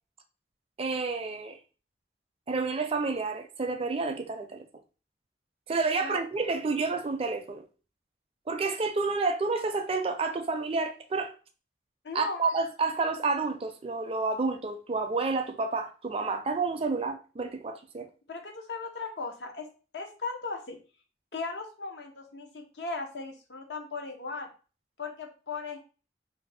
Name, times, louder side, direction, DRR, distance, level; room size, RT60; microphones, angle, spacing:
voice 1, 0.8-1.6 2.5-4.6 5.7-7.6 8.5-11.3 12.1-18.1, right 3 dB, 35° right, 0.4 m, -30 dB
voice 2, 12.0-12.4 18.3-19.7 19.9-20.8 21.3-24.5 25.0-25.8, left 3 dB, 75° left, 0.7 m, -37 dB
2.6 x 2.6 x 4.1 m
head